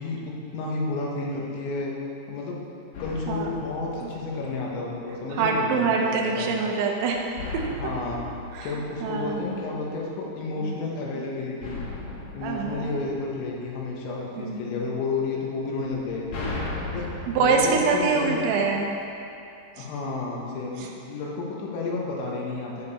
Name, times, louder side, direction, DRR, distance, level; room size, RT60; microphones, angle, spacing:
voice 1, 0.0-1.9 2.3-2.6 3.0-6.5 7.8-8.2 8.6-11.8 12.3-16.4 16.9-17.1 17.4-18.5 19.8-22.9, left 3 dB, 90° left, -3 dB, 3.6 m, -31 dB
sound 1, 2.9-4.8 7.4-9.8 11.6-13.9 15.8-18.9, left 3 dB, 65° left, 1.7 m, -37 dB
voice 2, 5.3-7.3 8.1-8.2 8.5-8.7 9.0-9.6 10.6-10.7 11.2-11.3 12.4-13.0 14.4-14.9 17.3-19.0 19.8-19.9, right 4 dB, 85° right, 0 dB, 3.2 m, -25 dB
12.5 x 6.9 x 4.2 m, 2.7 s
omnidirectional pair, 5.3 m